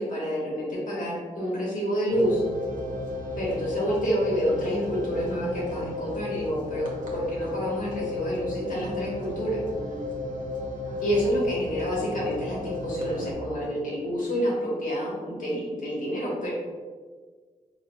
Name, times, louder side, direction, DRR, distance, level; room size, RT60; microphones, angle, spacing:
voice 1, 0.0-2.4 3.4-6.9 7.1-9.6 11.0-16.5, equal, 75° left, -5 dB, 1.2 m, -28 dB
sound 1, 2.1-13.3, left 2 dB, 75° right, 0.7 m, -34 dB
4.3 x 2.2 x 2.3 m, 1.5 s
cardioid pair, 65°, 14 cm